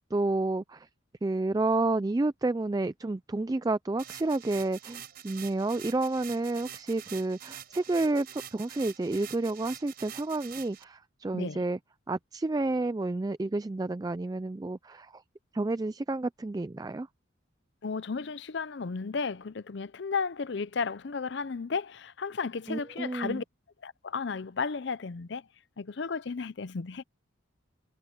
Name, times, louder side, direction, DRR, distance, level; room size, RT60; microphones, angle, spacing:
voice 1, 0.1-0.9 1.2-11.8 12.1-15.2 15.5-17.1 22.7-23.4, right 2 dB, 20° right, 0.3 m, -30 dB
sound 1, 4.0-10.8, right 10 dB, 45° right, 5.4 m, -46 dB
voice 2, 11.3-11.6 17.8-23.4 23.8-25.4 25.8-27.0, left 5 dB, 55° left, 0.5 m, -34 dB
head